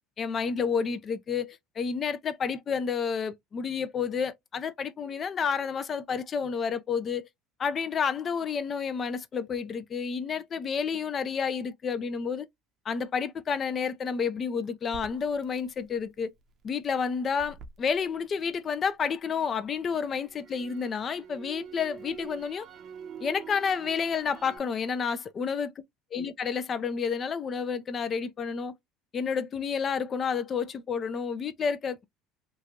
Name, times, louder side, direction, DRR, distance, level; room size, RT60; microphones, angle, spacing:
voice 1, 0.2-7.3 7.6-12.5 12.9-16.3 16.6-22.7 23.2-25.7 26.1-28.7 29.1-32.1, left 6 dB, 40° left, 0.5 m, -30 dB
Crackle, 14.9-19.0 19.4-24.6, right 6 dB, 45° right, 0.6 m, -47 dB
3.0 x 2.4 x 2.6 m
hypercardioid pair, 75°, 0 cm